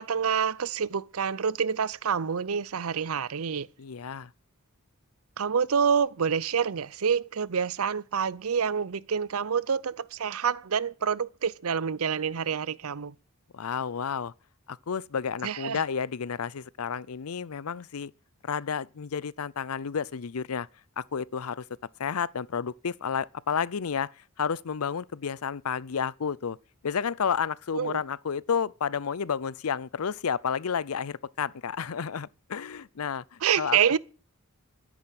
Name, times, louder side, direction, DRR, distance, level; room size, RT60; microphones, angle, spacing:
voice 1, 0.0-3.7 5.4-13.1 15.4-15.8 27.7-28.0 33.4-34.0, right 7 dB, 80° right, 0.6 m, -27 dB
voice 2, 3.8-4.3 13.5-14.3 14.7-18.1 18.4-20.7 21.0-21.6 22.0-26.6 26.8-34.0, left 6 dB, 85° left, 0.6 m, -31 dB
12.0 x 10.0 x 7.6 m
head